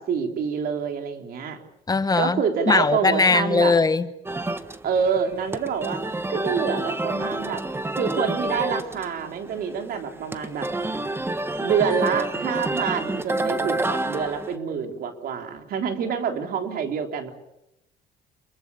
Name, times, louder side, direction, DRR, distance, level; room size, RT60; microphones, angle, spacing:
voice 1, 0.0-1.6 2.2-3.7 4.8-6.0 6.3-7.6 8.0-10.7 11.6-17.3, right 6 dB, 60° right, 5 dB, 3.7 m, -27 dB
voice 2, 1.9-2.4 2.7-4.1, left 4 dB, 20° left, 13 dB, 1.0 m, -20 dB
sound 1, 4.2-14.5, right 2 dB, 15° right, 1.5 m, -29 dB
28.0 x 22.5 x 7.0 m, 0.85 s
cardioid pair, 110°, 17 cm